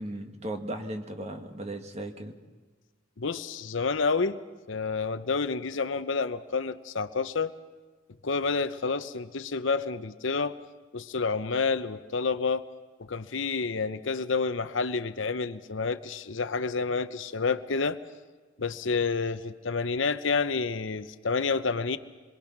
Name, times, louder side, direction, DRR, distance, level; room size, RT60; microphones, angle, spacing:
voice 1, 0.0-2.4, right 1 dB, 35° right, 5 dB, 1.8 m, -36 dB
voice 2, 3.2-4.4 4.7-7.5 8.2-10.6 10.9-12.7 13.0-18.0 18.6-22.0, left 4 dB, 70° left, 12 dB, 0.8 m, -29 dB
26.5 x 22.5 x 6.0 m, 1.3 s
head